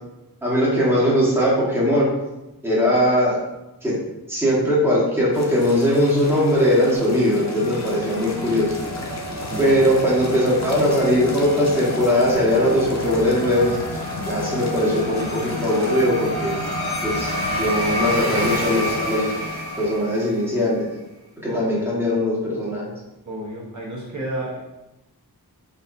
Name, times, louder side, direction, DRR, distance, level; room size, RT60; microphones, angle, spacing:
voice 1, 0.4-2.1 2.6-3.4 3.8-3.9 4.3-8.7 9.6-13.8 14.3-16.5 17.0-19.5 19.8-20.9 21.4-22.9, equal, 5° right, -7 dB, 1.4 m, -20 dB
sound 1, 5.3-16.1, left 2 dB, 45° left, 0.7 m, -37 dB
sound 2, 6.0-20.7, left 1 dB, 75° left, 1.1 m, -29 dB
voice 2, 9.4-9.7 21.4-21.9 23.3-24.6, right 1 dB, 50° right, -6 dB, 1.1 m, -31 dB
4.0 x 3.9 x 2.7 m, 0.98 s
wide cardioid pair, 65°, 38 cm